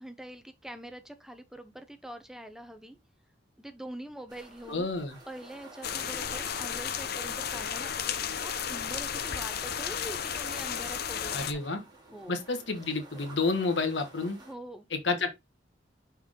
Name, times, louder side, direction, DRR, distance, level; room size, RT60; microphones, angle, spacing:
voice 1, 0.0-3.0 3.6-4.9 5.3-11.7 12.1-12.4 14.4-14.9, right 1 dB, 5° right, 0.7 m, -44 dB
sound 1, 4.3-14.5, right 2 dB, 25° right, 2.3 m, -53 dB
voice 2, 4.7-5.2 11.3-11.8 12.3-14.4 14.9-15.3, left 3 dB, 75° left, 1.5 m, -30 dB
sound 2, 5.8-11.5, left 8 dB, 55° left, 0.7 m, -33 dB
5.9 x 4.4 x 3.7 m
head